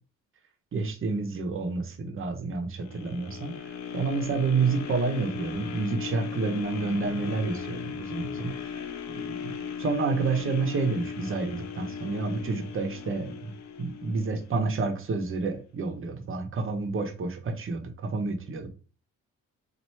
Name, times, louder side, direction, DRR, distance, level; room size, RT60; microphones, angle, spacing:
voice 1, 0.7-8.7 9.1-9.5 9.8-13.3 13.8-18.7, right 4 dB, 45° right, 0.9 m, -29 dB
sound 1, 2.8-14.9 15.4-15.5, left 7 dB, 65° left, 0.6 m, -37 dB
3.0 x 2.6 x 4.3 m
cardioid pair, 90°, 30 cm